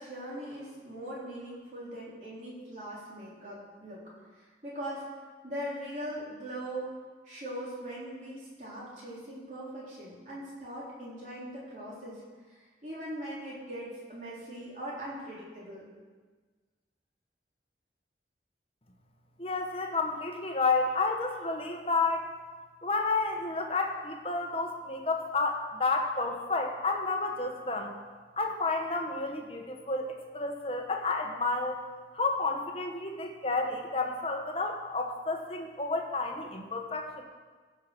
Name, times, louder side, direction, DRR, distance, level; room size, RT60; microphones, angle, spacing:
voice 1, 0.0-4.0 4.3-5.1 5.4-6.9 7.2-12.2 12.5-15.9, right 1 dB, 45° right, -7 dB, 3.9 m, -40 dB
voice 2, 19.4-22.3 22.8-27.9 28.4-31.8 32.1-37.2, left 3 dB, 35° left, 3 dB, 1.1 m, -31 dB
15.0 x 5.7 x 6.1 m, 1.4 s
head